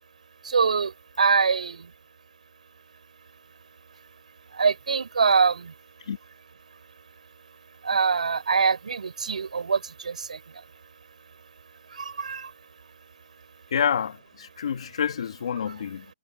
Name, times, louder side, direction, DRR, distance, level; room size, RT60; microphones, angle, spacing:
voice 1, 0.4-1.9 4.5-5.8 7.8-10.6 11.9-12.5 15.7-15.8, right 5 dB, 85° right, 7.1 m, -24 dB
voice 2, 13.7-16.1, left 7 dB, 55° left, 1.8 m, -28 dB
hypercardioid pair, 170°, 4 cm